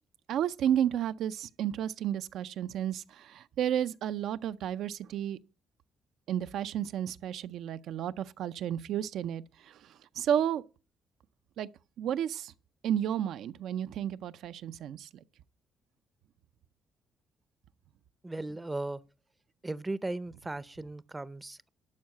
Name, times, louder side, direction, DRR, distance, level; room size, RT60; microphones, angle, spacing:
voice 1, 0.3-5.4 6.3-9.7 10.2-10.6 11.6-11.7 12.0-12.5 12.8-15.1, right 10 dB, 80° right, 0.5 m, -32 dB
voice 2, 18.2-19.0 19.6-21.7, right 2 dB, 15° right, 0.5 m, -37 dB
12.0 x 4.7 x 7.5 m
cardioid pair, 90°, 0 cm